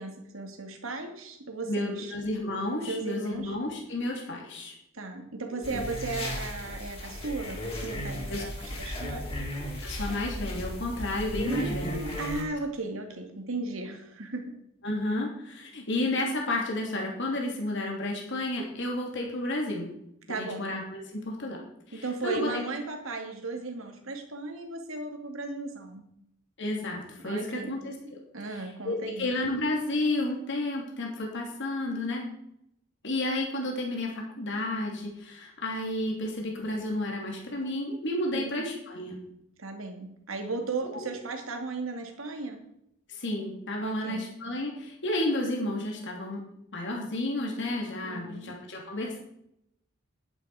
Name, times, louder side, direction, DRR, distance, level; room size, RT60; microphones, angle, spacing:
voice 1, 0.0-2.1 2.9-3.5 4.9-9.4 11.5-14.5 20.3-20.7 21.9-26.0 27.2-27.7 28.3-29.3 38.3-38.7 39.6-42.6 43.8-44.3 48.0-48.5, right 3 dB, 70° right, 4 dB, 2.5 m, -36 dB
voice 2, 1.7-4.7 5.7-5.8 8.3-8.4 9.8-12.0 14.8-19.9 20.3-21.6 21.9-22.6 26.6-28.2 28.6-32.3 33.0-39.2 40.9-41.1 43.1-46.4 46.7-49.2, left 1 dB, 60° left, 0 dB, 3.0 m, -31 dB
sound 1, 5.6-12.4, equal, 30° left, 3.9 m, -35 dB
11.0 x 11.0 x 5.0 m, 0.77 s
head